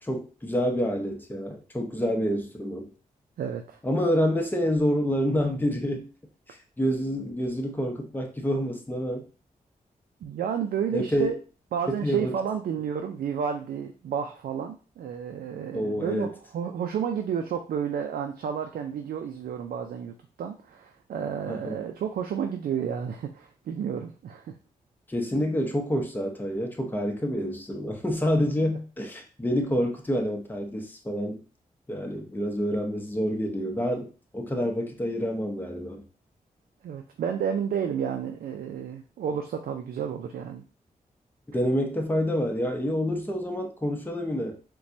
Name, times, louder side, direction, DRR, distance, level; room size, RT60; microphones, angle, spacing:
voice 1, 0.0-2.9 3.8-6.1 6.5-9.2 10.9-11.3 11.9-12.4 15.7-16.3 21.5-21.8 25.1-31.4 31.9-34.1 34.3-36.0 41.5-44.6, equal, 10° left, 2 dB, 0.8 m, -28 dB
voice 2, 3.4-3.8 10.2-11.4 11.7-24.5 36.8-40.6, right 7 dB, 80° right, 4 dB, 0.4 m, -31 dB
4.1 x 2.2 x 2.6 m, 0.35 s
cardioid pair, 50°, 15 cm